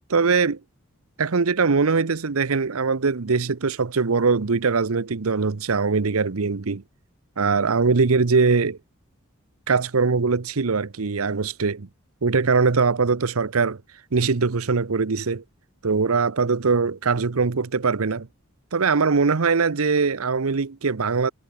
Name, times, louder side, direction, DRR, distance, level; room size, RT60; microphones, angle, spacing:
voice 1, 0.1-0.6 1.2-6.8 7.4-8.8 9.7-11.9 12.2-13.8 14.1-15.4 15.8-18.3 18.7-21.3, right 4 dB, 80° right, 0.8 m, -21 dB
head